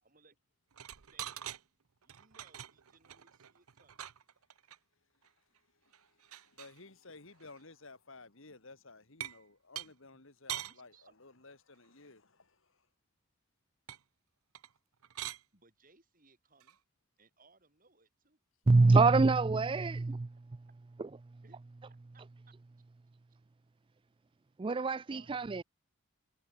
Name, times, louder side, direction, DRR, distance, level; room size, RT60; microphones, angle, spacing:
voice 1, 0.0-0.4 1.1-1.4 2.0-4.1 9.9-10.2 10.5-11.2 15.5-16.8 17.2-18.4 21.4-21.6 21.9-22.5 25.1-25.5, right 4 dB, 40° right, 4.3 m, -66 dB
sound 1, 0.7-1.6 2.0-4.8 5.2-5.3 5.6-5.7 5.9-6.8 7.4-7.6 9.2-9.4 9.8-9.9 10.5-10.7 13.9-14.0 14.5-14.8 15.0-15.4 16.6-16.7, right 12 dB, 85° right, 0.8 m, -44 dB
voice 2, 5.8-12.9, left 3 dB, 65° left, 2.3 m, -55 dB
voice 3, 18.7-20.3 21.0-21.1 24.6-25.6, right 3 dB, 25° right, 0.3 m, -25 dB
head